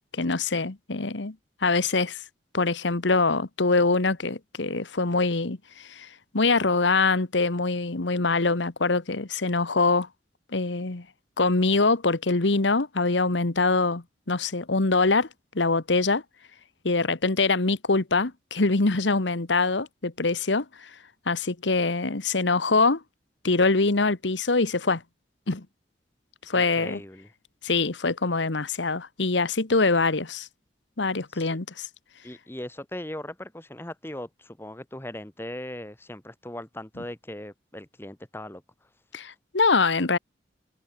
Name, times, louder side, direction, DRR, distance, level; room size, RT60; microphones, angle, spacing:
voice 1, 0.1-1.4 1.6-2.2 2.5-10.1 10.5-11.1 11.4-15.3 15.5-16.2 16.8-20.9 21.3-23.0 23.4-25.0 25.5-25.7 26.5-27.0 27.6-30.5 31.0-31.9 39.1-40.2, left 3 dB, 90° left, 1.4 m, -24 dB
voice 2, 26.5-27.3 31.3-31.5 32.2-38.6, left 1 dB, 15° left, 1.4 m, -39 dB
head